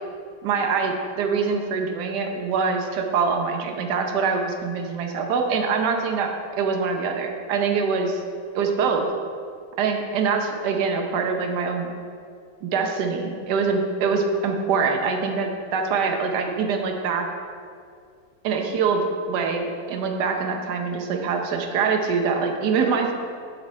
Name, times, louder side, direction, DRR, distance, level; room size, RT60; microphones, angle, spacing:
voice 1, 0.4-8.2 8.5-9.1 9.8-11.9 12.6-17.3 18.4-23.1, right 5 dB, 70° right, 3 dB, 1.4 m, -24 dB
11.0 x 5.5 x 4.3 m, 2.2 s
omnidirectional pair, 1.9 m